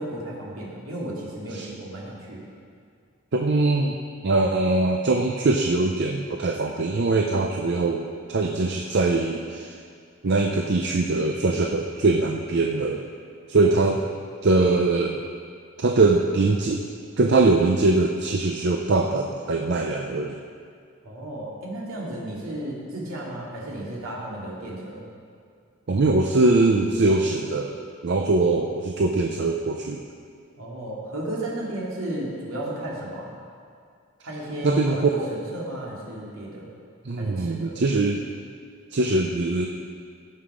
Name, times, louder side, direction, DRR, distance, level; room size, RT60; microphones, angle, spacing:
voice 1, 0.0-2.5 13.6-13.8 21.0-25.1 30.6-33.3 34.2-36.7 37.2-37.8, right 1 dB, 75° right, -5 dB, 2.6 m, -34 dB
voice 2, 3.3-4.0 4.2-9.8 10.2-13.0 13.5-14.0 14.4-15.2 15.8-16.8 17.2-20.4 25.9-27.8 28.0-30.0 34.6-35.1 37.0-38.2 38.9-39.7, right 3 dB, 50° right, 2 dB, 0.5 m, -22 dB
16.0 x 5.7 x 4.9 m, 2.2 s
head